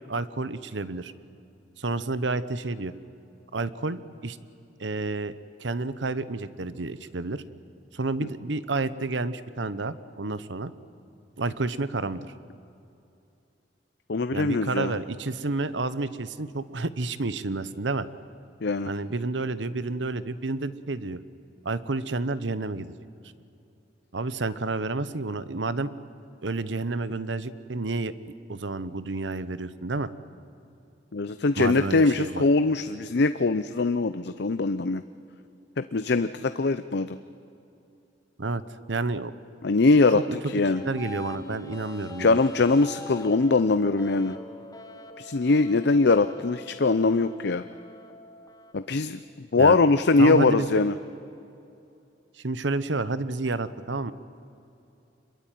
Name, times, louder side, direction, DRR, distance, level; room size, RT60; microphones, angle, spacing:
voice 1, 0.1-1.1 1.8-2.9 3.5-4.4 4.8-5.3 5.6-7.4 7.9-10.7 11.4-12.3 14.3-18.1 18.9-21.2 21.6-22.9 24.1-25.9 26.4-28.1 28.5-30.1 31.6-32.4 38.4-38.6 38.9-39.3 40.1-40.4 40.7-42.4 49.6-49.8 50.2-50.8 52.4-54.1, right 3 dB, 90° right, 14 dB, 1.0 m, -30 dB
voice 2, 14.1-15.0 18.6-18.9 31.1-35.0 35.8-37.2 39.6-40.8 42.2-44.4 45.2-47.6 48.7-49.2 49.5-51.0, left 3 dB, 65° left, 11 dB, 0.6 m, -22 dB
sound 1, 40.7-48.7, left 2 dB, 20° left, 1.6 m, -44 dB
26.0 x 22.5 x 9.2 m, 2.7 s
head